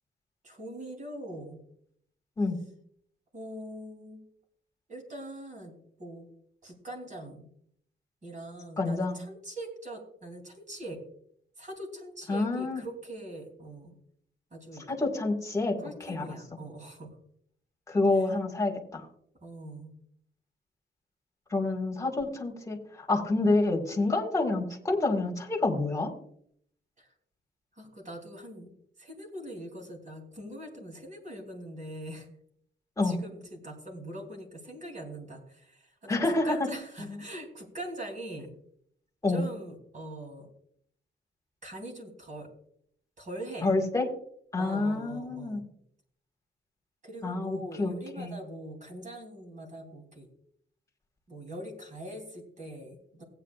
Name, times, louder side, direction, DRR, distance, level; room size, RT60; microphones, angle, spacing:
voice 1, 0.4-1.6 3.3-4.2 4.9-5.7 6.0-6.3 6.6-7.5 8.2-11.0 11.6-13.9 14.5-14.9 15.8-17.2 18.1-18.3 19.4-20.0 27.0-27.1 27.8-28.7 29.0-32.3 33.0-38.5 39.3-40.5 41.6-42.5 43.2-43.7 44.6-45.7 47.0-50.3 51.3-53.2, right 1 dB, 40° right, 2 dB, 3.3 m, -42 dB
voice 2, 8.8-9.2 12.3-12.8 14.9-15.7 16.1-16.2 17.9-19.1 21.5-26.1 33.0-33.1 36.1-36.6 39.2-39.4 43.6-44.0 44.5-45.6 47.2-48.3, left 2 dB, 15° left, 0 dB, 1.9 m, -28 dB
16.5 x 9.1 x 2.5 m, 0.66 s
wide cardioid pair, 160°, 20 cm